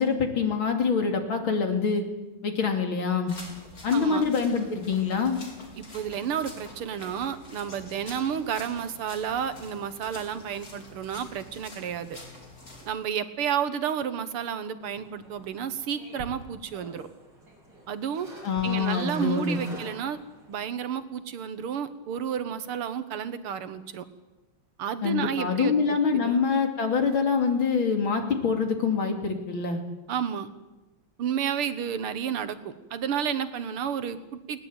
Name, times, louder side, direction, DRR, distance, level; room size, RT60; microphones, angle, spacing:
voice 1, 0.0-2.0 2.4-3.4 3.8-5.4 18.4-19.6 25.0-29.8, left 5 dB, 65° left, 4 dB, 3.6 m, -25 dB
sound 1, 3.3-12.9, left 1 dB, 40° left, 4.7 m, -46 dB
voice 2, 3.9-4.2 5.8-12.2 12.9-17.1 17.9-18.3 18.6-20.2 20.5-24.0 24.8-26.4 30.1-30.5 31.2-34.6, right 8 dB, 90° right, 12 dB, 2.2 m, -31 dB
sound 2, 14.8-20.6, right 1 dB, 55° right, 6.6 m, -47 dB
20.5 x 19.0 x 8.9 m, 1.1 s
omnidirectional pair, 2.4 m